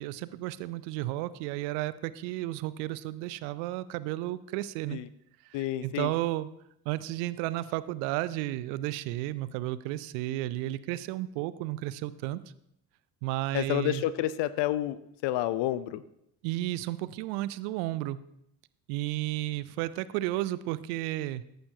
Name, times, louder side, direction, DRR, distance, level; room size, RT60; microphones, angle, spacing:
voice 1, 0.0-5.0 5.5-6.5 6.9-12.4 13.2-14.0 16.4-18.2 18.9-21.4, right 16 dB, 70° right, 17 dB, 0.7 m, -33 dB
voice 2, 5.5-6.1 13.5-16.0, left 13 dB, 55° left, 15 dB, 0.7 m, -29 dB
14.5 x 11.0 x 2.8 m, 0.76 s
hypercardioid pair, 50°, 50 cm